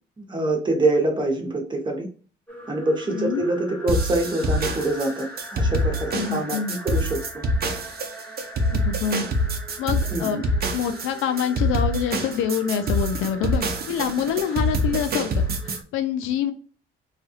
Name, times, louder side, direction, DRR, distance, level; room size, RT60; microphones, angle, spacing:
voice 1, 0.2-2.1 2.7-7.4 10.1-10.5, right 2 dB, 25° right, 2 dB, 1.0 m, -25 dB
sound 1, 2.5-15.8, equal, 5° left, 0.7 m, -41 dB
voice 2, 3.1-3.4 6.1-6.7 8.7-9.3 9.8-10.4 10.7-16.5, left 8 dB, 90° left, 9 dB, 0.4 m, -26 dB
sound 2, 3.9-15.8, equal, 50° right, 0.7 m, -25 dB
3.3 x 2.3 x 2.7 m, 0.39 s
cardioid pair, 90°, 20 cm